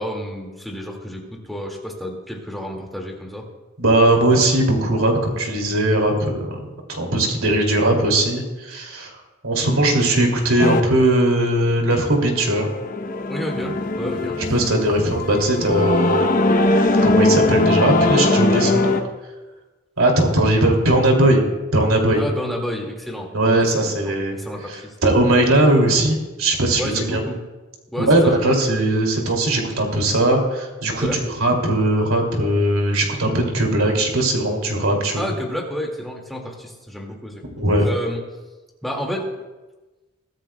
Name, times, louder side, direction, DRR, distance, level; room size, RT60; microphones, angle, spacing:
voice 1, 0.0-3.5 13.3-14.4 22.2-23.3 23.7-24.9 26.8-27.4 27.9-28.5 30.9-31.2 35.2-37.4 37.8-38.2 38.8-39.3, equal, ahead, -1 dB, 2.1 m, -30 dB
voice 2, 3.8-6.6 6.9-9.2 9.4-12.7 14.5-16.4 17.0-18.9 20.0-21.4 21.7-22.2 23.3-24.4 24.7-27.2 28.1-31.1 31.4-35.3 37.6-37.9, right 1 dB, 85° right, 1 dB, 2.7 m, -19 dB
sound 1, 10.6-10.8 11.9-19.0, left 2 dB, 40° left, 0.9 m, -20 dB
22.5 x 13.5 x 2.3 m, 1.2 s
head